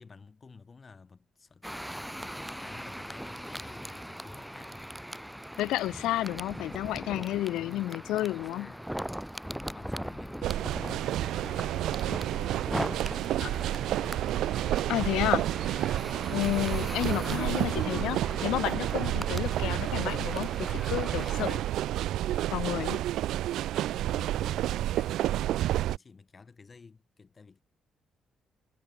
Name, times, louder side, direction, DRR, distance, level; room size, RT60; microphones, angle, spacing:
voice 1, 0.0-4.9 7.5-8.9 9.5-12.7 13.0-14.5 17.6-18.1 23.5-27.6, left 4 dB, 35° left, 4.8 m, -52 dB
sound 1, 1.6-21.6, equal, 5° right, 0.7 m, -40 dB
voice 2, 5.6-8.7 13.4-13.5 14.9-15.5 16.3-21.6 22.5-23.0, left 15 dB, 90° left, 1.0 m, -31 dB
sound 2, 10.4-26.0, right 13 dB, 85° right, 0.6 m, -30 dB
cardioid pair, 90°, 0 cm